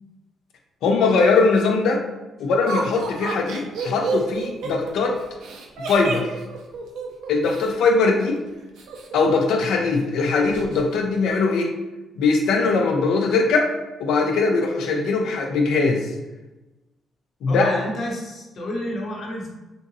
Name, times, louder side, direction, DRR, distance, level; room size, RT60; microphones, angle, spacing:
voice 1, 0.8-2.0 2.4-5.2 5.9-6.3 7.3-8.4 9.1-11.7 12.2-13.7 14.0-16.1 17.4-17.7, left 4 dB, 85° left, 2 dB, 0.5 m, -20 dB
Laughter, 2.7-7.7 8.8-9.6 9.9-10.0 10.4-10.8, right 4 dB, 80° right, 0.5 m, -30 dB
voice 2, 17.5-19.5, left 1 dB, 55° left, -2 dB, 0.9 m, -30 dB
3.4 x 2.9 x 2.6 m, 1.1 s
cardioid pair, 90°, 0 cm